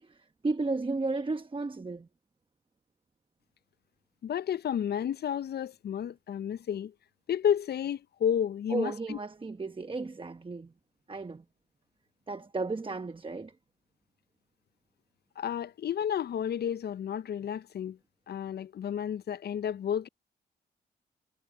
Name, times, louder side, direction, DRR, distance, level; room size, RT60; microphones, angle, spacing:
voice 1, 0.0-2.1 8.7-10.7 11.1-11.4 12.3-13.5, right 3 dB, 25° right, 1.1 m, -34 dB
voice 2, 4.2-6.9 7.3-9.2 15.4-18.0 18.3-20.1, left 9 dB, 60° left, 0.5 m, -31 dB
supercardioid pair, 55°, 19 cm